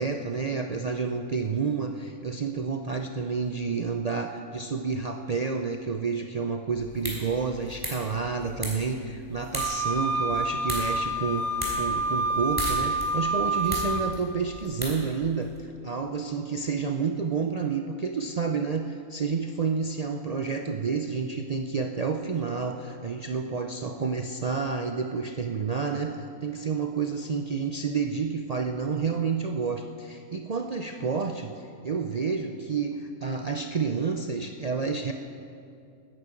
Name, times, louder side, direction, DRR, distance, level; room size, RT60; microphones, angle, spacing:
voice 1, 0.0-35.1, right 5 dB, 80° right, 5 dB, 0.3 m, -30 dB
sound 1, 6.7-15.6, equal, 15° right, 3.4 m, -38 dB
Wind instrument woodwind instrument, 9.6-14.1, right 2 dB, 55° right, 1.1 m, -28 dB
13.5 x 9.7 x 9.0 m, 2.5 s
omnidirectional pair, 1.5 m